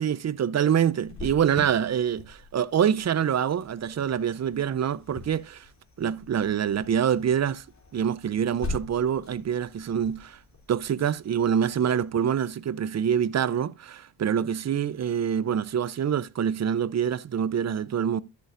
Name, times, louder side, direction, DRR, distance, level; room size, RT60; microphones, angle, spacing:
voice 1, 0.0-5.6 6.0-7.6 7.9-10.4 10.7-18.2, right 8 dB, 35° right, 0.6 m, -25 dB
Cricket, 1.0-12.5, left 3 dB, 35° left, 3.4 m, -43 dB
13.0 x 7.0 x 2.6 m
supercardioid pair, 65°, 47 cm